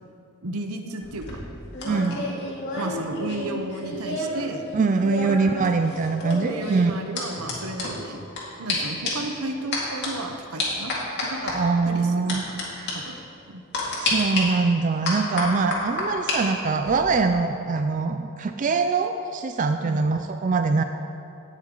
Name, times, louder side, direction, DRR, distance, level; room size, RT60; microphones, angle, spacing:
voice 1, 0.4-1.4 1.9-2.4 2.8-4.6 6.4-8.2 8.6-10.9 11.2-11.5 11.9-12.1 12.5-12.7 12.9-13.2 13.5-13.6 19.8-20.0, right 2 dB, 80° right, 5 dB, 0.9 m, -33 dB
sound 1, 1.0-4.4 4.7-8.4 8.7-8.8 9.0-9.3 9.7-10.1 10.6-11.5 12.3-12.6 12.9-13.0 13.7-14.4 15.0-16.4 16.7-17.1, left 2 dB, 50° left, 2.3 m, -30 dB
voice 2, 1.8-2.2 4.7-6.9 11.5-13.0 14.0-20.8, right 4 dB, 35° right, 7 dB, 0.3 m, -23 dB
17.5 x 6.4 x 3.8 m, 2.7 s
head